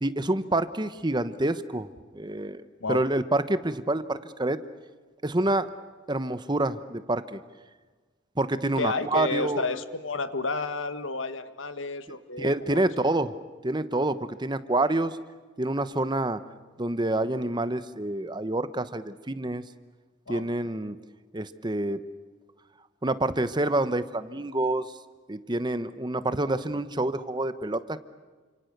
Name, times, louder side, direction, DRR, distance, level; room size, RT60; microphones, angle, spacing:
voice 1, 0.0-1.9 2.1-2.6 2.9-4.6 5.2-5.7 6.1-7.4 8.4-9.7 12.4-13.3 13.6-15.2 15.6-16.4 16.8-19.6 20.3-21.0 21.3-22.0 23.0-24.9 25.3-28.0, right 2 dB, 25° right, 13 dB, 1.0 m, -27 dB
voice 2, 8.8-12.9 20.3-20.4, left 3 dB, 80° left, 11 dB, 1.6 m, -31 dB
29.5 x 26.5 x 6.7 m, 1.4 s
head